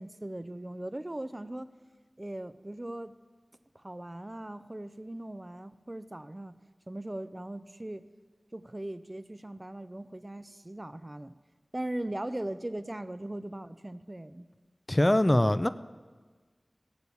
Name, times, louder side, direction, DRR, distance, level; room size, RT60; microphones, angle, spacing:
voice 1, 0.0-1.7 2.2-3.1 3.7-6.6 6.9-8.1 8.5-11.3 11.7-14.5, right 1 dB, 30° right, 13 dB, 0.5 m, -39 dB
voice 2, 14.9-15.7, left 1 dB, 25° left, 13 dB, 0.4 m, -22 dB
16.5 x 8.2 x 7.0 m, 1.4 s
wide cardioid pair, 55°, 0 cm